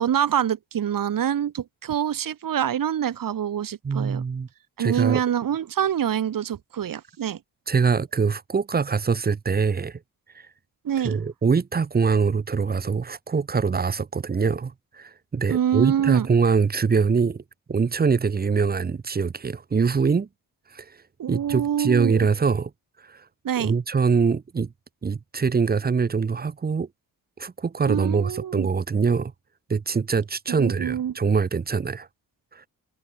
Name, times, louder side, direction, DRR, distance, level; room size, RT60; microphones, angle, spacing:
voice 1, 0.0-4.2 4.8-7.4 10.8-11.2 15.5-16.3 21.2-22.3 23.4-23.7 27.9-28.7 30.6-31.1, right 9 dB, 65° right, 2.0 m, -25 dB
voice 2, 3.8-4.5 4.8-5.2 7.7-10.0 11.0-17.4 17.7-20.3 20.7-20.9 21.3-22.7 23.1-23.2 23.6-24.7 25.0-26.9 27.4-29.3 29.7-32.1 32.5-32.6, right 5 dB, 25° right, 0.8 m, -23 dB
cardioid pair, 85°, 36 cm